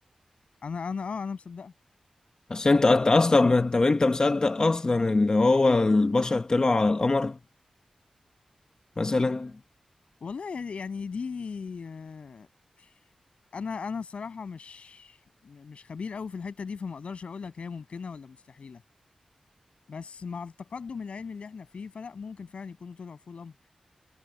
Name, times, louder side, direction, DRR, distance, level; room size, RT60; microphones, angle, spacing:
voice 1, 0.6-1.7 10.2-12.5 12.8-12.9 13.5-18.8 19.9-23.5, left 5 dB, 75° left, 7.8 m, -37 dB
voice 2, 2.5-7.4 9.0-9.5, left 3 dB, 35° left, 1.1 m, -22 dB
wide cardioid pair, 85°, 2 cm